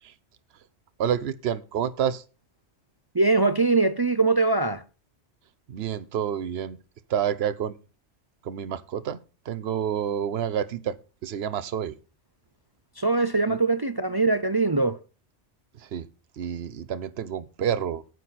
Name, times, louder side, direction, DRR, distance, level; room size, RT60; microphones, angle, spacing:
voice 1, 1.0-2.2 5.7-6.8 7.1-7.7 8.4-9.2 9.5-11.0 11.2-12.0 13.5-13.6 15.8-16.1 16.4-18.0, right 9 dB, 65° right, 1.0 m, -28 dB
voice 2, 3.1-4.8 13.0-15.0, right 3 dB, 35° right, 0.3 m, -22 dB
9.5 x 9.4 x 4.2 m
omnidirectional pair, 1.2 m